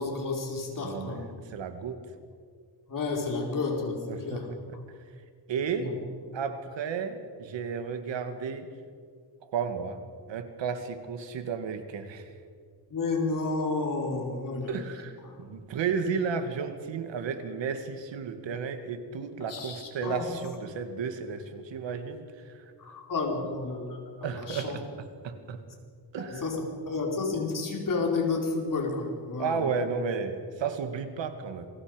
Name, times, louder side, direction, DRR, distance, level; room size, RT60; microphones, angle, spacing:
voice 1, 0.0-1.2 2.9-4.5 5.8-5.9 12.9-14.8 19.5-20.2 22.8-24.0 24.3-24.8 26.2-26.6 26.9-29.6, left 3 dB, 45° left, 0 dB, 4.7 m, -31 dB
voice 2, 0.8-2.0 4.1-4.8 5.5-6.0 6.3-8.7 9.4-10.0 10.3-12.3 14.7-22.6 24.2-25.6 26.1-26.5 29.4-31.7, right 6 dB, 90° right, 7 dB, 2.2 m, -33 dB
28.5 x 22.5 x 5.2 m, 2.1 s
wide cardioid pair, 135°, 43 cm